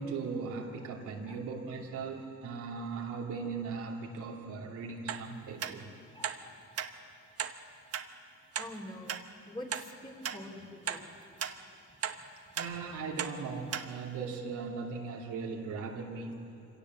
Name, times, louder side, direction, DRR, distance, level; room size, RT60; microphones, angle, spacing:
voice 1, 0.0-5.9 12.5-16.4, right 4 dB, 85° right, -1 dB, 2.7 m, -38 dB
sound 1, 5.1-5.2 5.6-5.7 6.2-6.4 6.8-6.9 7.4-7.6 7.9-8.1 8.5-8.7 9.1-9.2 9.7-9.9 10.2-10.4 10.9-11.0 11.4-11.6 12.0-12.2 12.6-12.7 13.2-13.3 13.7-13.9 14.3-14.4, right 8 dB, 50° right, 1.1 m, -35 dB
voice 2, 6.1-6.6 8.6-11.1, left 1 dB, 15° left, 1 dB, 3.3 m, -45 dB
24.5 x 17.5 x 7.4 m, 2.7 s
cardioid pair, 90°, 30 cm